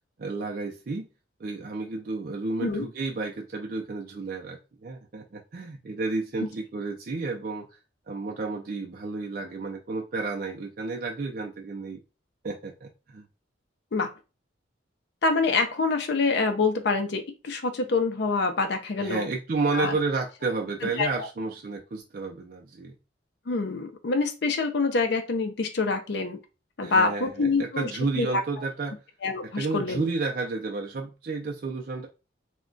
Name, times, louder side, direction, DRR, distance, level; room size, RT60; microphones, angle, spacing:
voice 1, 0.2-1.1 1.4-7.7 8.1-12.0 12.4-13.3 19.0-23.0 26.8-28.9 29.6-32.1, right 3 dB, 50° right, 0.4 m, -31 dB
voice 2, 15.2-19.3 19.7-19.9 20.8-21.3 23.5-26.4 26.8-28.4 29.2-30.1, left 3 dB, 60° left, 0.5 m, -26 dB
2.3 x 2.2 x 3.7 m
head